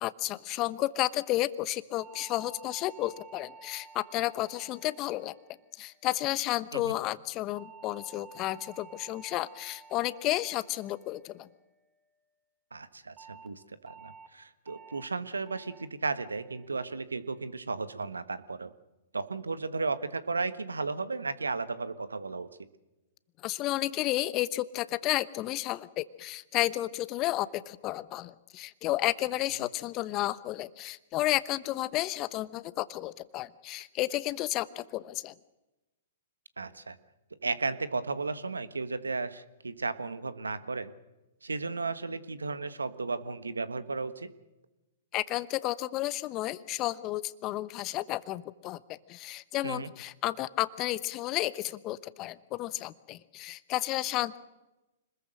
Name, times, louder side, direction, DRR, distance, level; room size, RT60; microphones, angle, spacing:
voice 1, 0.0-5.3 5.8-11.5 23.4-35.3 45.1-54.4, left 16 dB, 35° left, 16 dB, 1.0 m, -32 dB
sound 1, 2.0-6.4 7.6-12.0 13.2-13.5 13.9-14.3 14.7-15.1 15.5-15.9 16.3-16.7 17.1-17.5, right 5 dB, 30° right, 3.7 m, -53 dB
voice 2, 12.7-18.7 19.1-22.5 36.6-37.0 37.4-40.9 41.4-44.3 49.6-49.9, right 4 dB, 90° right, 14 dB, 1.4 m, -34 dB
25.5 x 21.0 x 6.5 m, 1.0 s
hypercardioid pair, 115°, 0 cm